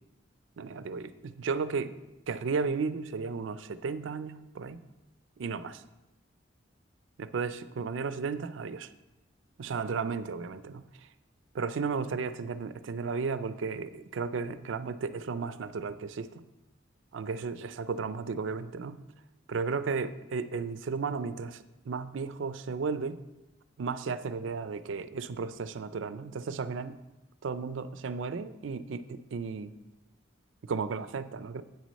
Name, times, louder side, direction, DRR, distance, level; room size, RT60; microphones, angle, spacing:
voice 1, 0.6-2.0 2.3-4.8 5.4-5.8 7.2-8.9 9.6-10.8 11.5-16.4 17.1-19.0 19.5-21.6 21.9-23.2 23.8-27.0 27.4-29.7 30.6-31.6, right 5 dB, 85° right, 13 dB, 0.4 m, -34 dB
8.6 x 6.2 x 4.1 m, 0.99 s
head